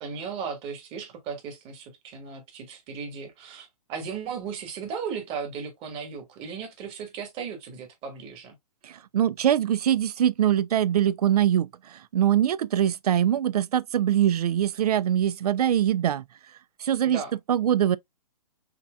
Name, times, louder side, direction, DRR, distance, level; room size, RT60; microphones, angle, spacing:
voice 1, 0.0-8.5 17.0-17.3, right 6 dB, 30° right, 1.5 m, -36 dB
voice 2, 8.8-16.2 16.8-17.2 17.5-18.0, right 10 dB, 75° right, 0.4 m, -23 dB
5.7 x 2.9 x 2.3 m
hypercardioid pair, 130°, 20 cm